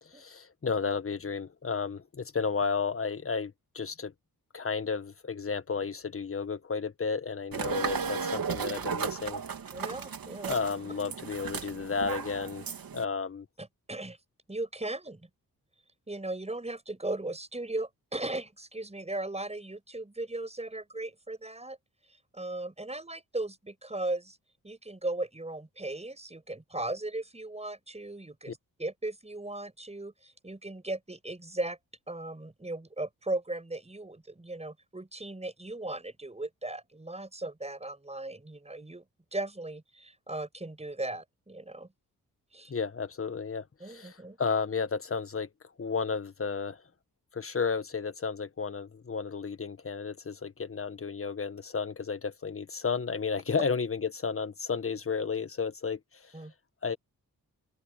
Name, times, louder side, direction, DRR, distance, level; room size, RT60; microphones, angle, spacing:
voice 1, 0.0-4.1 4.5-9.4 10.5-12.7 12.9-13.4 42.7-45.5 45.8-46.8 47.3-56.3 56.8-57.0, left 5 dB, 35° left, 1.6 m, -32 dB
sound 1, 7.5-13.0, right 6 dB, 70° right, 3.5 m, -35 dB
voice 2, 9.7-10.6 13.6-14.2 14.5-15.2 16.1-21.8 22.3-24.4 24.6-31.8 32.1-39.0 39.3-41.9 42.5-42.7 43.8-44.4 56.3-56.5, right 2 dB, 15° right, 6.6 m, -37 dB
cardioid pair, 80°, 36 cm